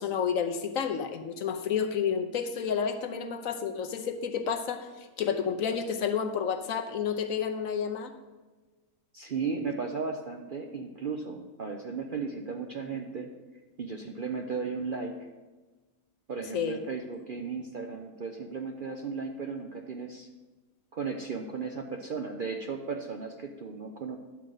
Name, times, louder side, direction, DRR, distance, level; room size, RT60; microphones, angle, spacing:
voice 1, 0.0-4.9 5.2-8.1 16.5-16.8, left 7 dB, 70° left, 6 dB, 1.1 m, -30 dB
voice 2, 9.1-13.3 13.8-15.2 16.3-20.3 20.9-24.2, right 5 dB, 55° right, 3 dB, 0.6 m, -35 dB
11.0 x 7.6 x 3.9 m, 1.2 s
omnidirectional pair, 1.6 m